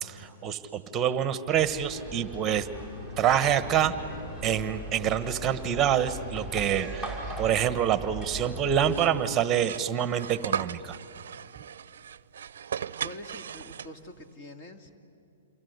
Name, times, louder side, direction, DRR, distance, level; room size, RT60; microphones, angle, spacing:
voice 1, 0.0-2.7 3.2-4.0 4.4-11.0, right 9 dB, 20° right, 12 dB, 1.2 m, -26 dB
sound 1, 1.5-9.0, right 2 dB, 20° left, 5.7 m, -40 dB
Bowed string instrument, 2.9-7.9, equal, 75° left, 7.2 m, -47 dB
sound 2, 8.8-14.2, right 8 dB, 75° right, 0.6 m, -37 dB
voice 2, 13.0-15.0, left 1 dB, 35° left, 5 dB, 2.2 m, -45 dB
28.0 x 23.5 x 8.2 m, 2.6 s
hypercardioid pair, 140°, 0 cm